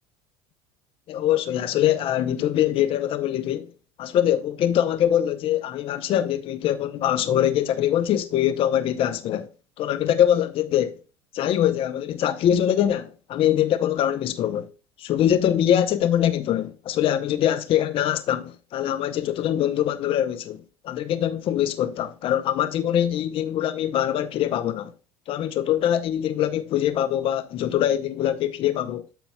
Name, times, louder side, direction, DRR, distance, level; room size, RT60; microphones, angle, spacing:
voice 1, 1.1-3.7 4.0-9.5 9.8-11.0 11.3-14.7 15.0-24.9 25.3-29.1, left 11 dB, 45° left, 0.6 m, -23 dB
9.1 x 6.9 x 2.3 m
hypercardioid pair, 70°, 12 cm